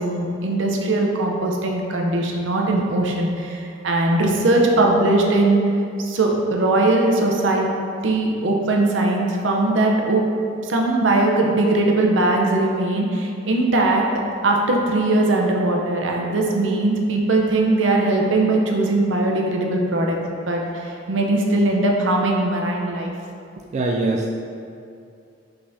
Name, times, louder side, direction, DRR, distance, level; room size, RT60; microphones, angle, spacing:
voice 1, 0.0-5.6 6.0-7.7 8.0-10.2 10.7-14.1 14.4-20.2 20.5-23.1, right 2 dB, 80° right, 0 dB, 0.6 m, -20 dB
voice 2, 23.7-24.4, right 2 dB, 40° right, -1 dB, 0.3 m, -22 dB
5.8 x 3.4 x 2.6 m, 2.5 s
head